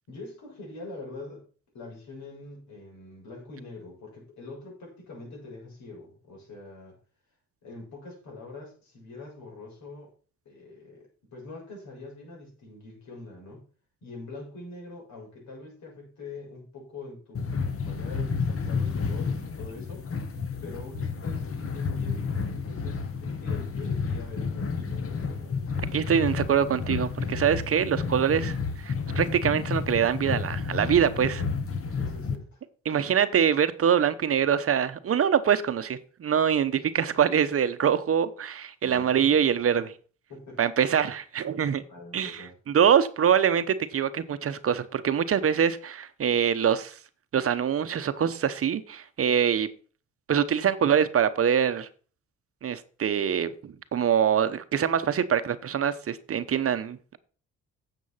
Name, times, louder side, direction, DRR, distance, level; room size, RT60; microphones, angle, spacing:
voice 1, 0.1-1.5 1.7-7.0 7.6-10.1 10.5-13.7 14.0-20.1 20.6-25.6 31.9-32.6 38.8-39.5 40.3-40.6 41.9-42.5, left 3 dB, 70° left, 7.0 m, -44 dB
sound 1, 17.3-32.3, left 5 dB, 45° left, 1.7 m, -31 dB
voice 2, 25.9-31.4 32.8-39.9 40.6-41.8 42.1-47.0 47.3-49.7 50.3-51.9 52.6-57.2, right 8 dB, 50° right, 0.9 m, -24 dB
9.5 x 7.2 x 5.7 m
cardioid pair, 90°, 30 cm